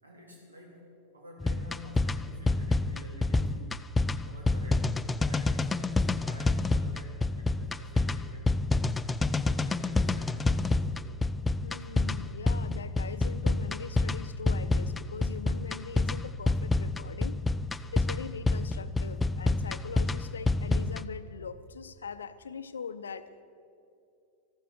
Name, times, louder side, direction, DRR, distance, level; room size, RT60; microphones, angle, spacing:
voice 1, 0.0-3.9 4.2-8.5 8.9-11.1, left 1 dB, 75° right, -1 dB, 3.4 m, -50 dB
sound 1, 1.4-21.0, left 3 dB, 10° left, 0.4 m, -28 dB
voice 2, 11.6-17.4 17.9-23.4, left 6 dB, 70° left, 13 dB, 0.6 m, -42 dB
14.0 x 12.5 x 6.5 m, 2.6 s
figure-of-eight pair, 90°, 0 cm